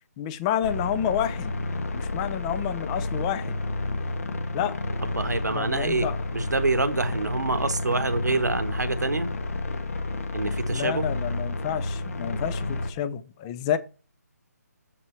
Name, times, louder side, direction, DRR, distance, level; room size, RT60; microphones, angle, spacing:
voice 1, 0.2-1.5 1.9-3.6 4.5-4.8 5.5-6.2 10.7-13.8, left 10 dB, 20° left, 0.7 m, -29 dB
sound 1, 0.6-12.9, left 2 dB, 55° left, 1.7 m, -31 dB
voice 2, 5.0-6.1 6.3-9.3 10.3-11.1, right 3 dB, 80° right, 1.4 m, -26 dB
7.5 x 6.1 x 4.5 m
figure-of-eight pair, 150°, 9 cm